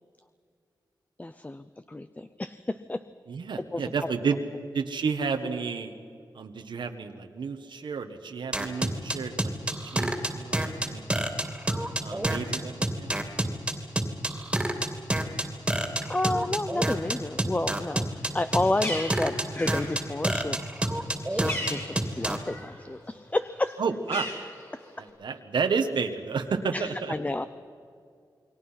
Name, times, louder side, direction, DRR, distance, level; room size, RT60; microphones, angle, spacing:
voice 1, 1.2-3.0 3.7-3.8 16.1-20.6 21.2-23.8 26.7-27.4, left 2 dB, 20° left, 12 dB, 0.7 m, -30 dB
voice 2, 3.3-4.4 4.7-5.9 6.3-11.3 12.0-13.2 23.8-24.3 25.0-27.1, right 5 dB, 90° right, 5 dB, 1.5 m, -31 dB
sound 1, 8.5-22.4, right 1 dB, 10° right, 2.8 m, -27 dB
Bird, 18.2-22.8 23.2-25.1, left 1 dB, 35° left, 7.5 m, -38 dB
29.0 x 22.5 x 5.8 m, 2.3 s
wide cardioid pair, 110°, 8 cm